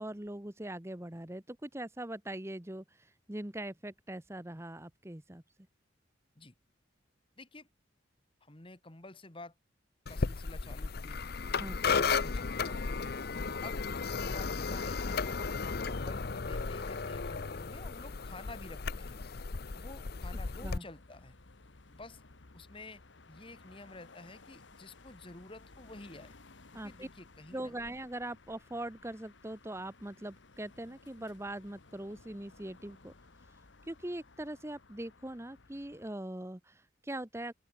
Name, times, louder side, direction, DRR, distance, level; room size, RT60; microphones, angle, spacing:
voice 1, 0.0-5.4 11.6-12.0 20.6-20.8 26.7-27.1 27.5-33.1 33.9-37.5, right 1 dB, 15° right, 1.1 m, -41 dB
voice 2, 7.4-7.7 8.4-9.5 10.1-11.2 12.0-13.2 13.6-13.9 14.1-15.5 15.9-19.2 19.7-21.4 21.9-22.2 22.5-26.4 26.8-27.8, left 2 dB, 25° left, 1.9 m, -51 dB
sound 1, 10.1-20.8, left 4 dB, 50° left, 0.7 m, -34 dB
sound 2, 16.5-36.1, left 3 dB, 70° left, 1.4 m, -58 dB
open air
head